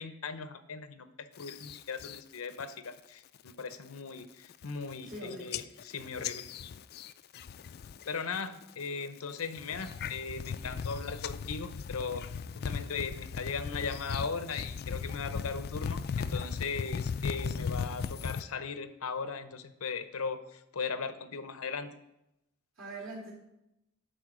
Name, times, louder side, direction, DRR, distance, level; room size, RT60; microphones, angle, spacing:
voice 1, 0.0-6.5 8.1-12.2 12.6-21.9, left 5 dB, 90° left, 11 dB, 0.7 m, -38 dB
sound 1, 1.4-2.2 2.6-3.0 3.4-3.7 4.2-4.3 4.5-5.2 5.5-8.1 8.3-8.9 9.4-18.4, left 6 dB, 45° left, 0.3 m, -37 dB
voice 2, 5.0-5.6 8.2-8.5 22.8-23.3, right 2 dB, 65° right, -5 dB, 3.0 m, -43 dB
11.5 x 4.5 x 6.1 m, 0.89 s
head